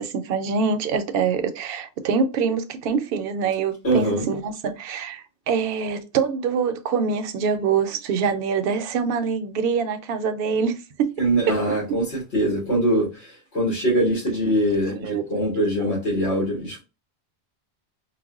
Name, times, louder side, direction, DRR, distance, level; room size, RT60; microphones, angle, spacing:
voice 1, 0.0-11.1 14.9-15.2, right 6 dB, 65° right, 0.7 m, -25 dB
voice 2, 3.8-4.3 11.2-16.8, right 1 dB, 80° left, 1.5 m, -23 dB
4.0 x 2.1 x 2.3 m
omnidirectional pair, 1.1 m